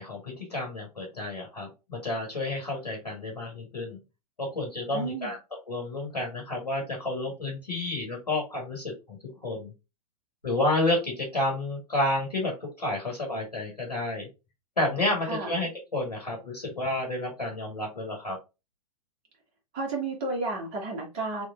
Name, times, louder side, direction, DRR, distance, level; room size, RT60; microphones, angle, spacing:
voice 1, 0.0-4.0 4.4-5.4 5.7-9.7 10.4-14.3 14.8-18.4, left 2 dB, 80° left, 0 dB, 1.6 m, -30 dB
voice 2, 4.9-5.3 15.2-15.5 19.7-21.5, right 3 dB, 35° right, 0 dB, 1.6 m, -32 dB
3.5 x 3.2 x 2.5 m, 0.27 s
figure-of-eight pair, 105°, 20 cm